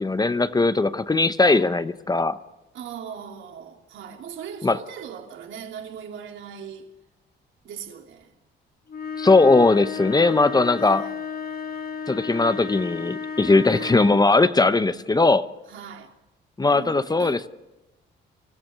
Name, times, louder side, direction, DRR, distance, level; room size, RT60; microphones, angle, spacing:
voice 1, 0.0-2.4 4.6-4.8 9.2-11.0 12.1-15.5 16.6-17.5, left 3 dB, 20° left, 0.9 m, -19 dB
voice 2, 1.4-1.7 2.7-6.9 7.6-8.3 10.8-11.2 13.7-14.0 15.7-16.1 16.7-17.4, right 7 dB, 75° right, 3.0 m, -39 dB
sound 1, 8.9-14.4, left 6 dB, 50° left, 2.3 m, -33 dB
25.5 x 15.0 x 6.9 m
cardioid pair, 90°, 20 cm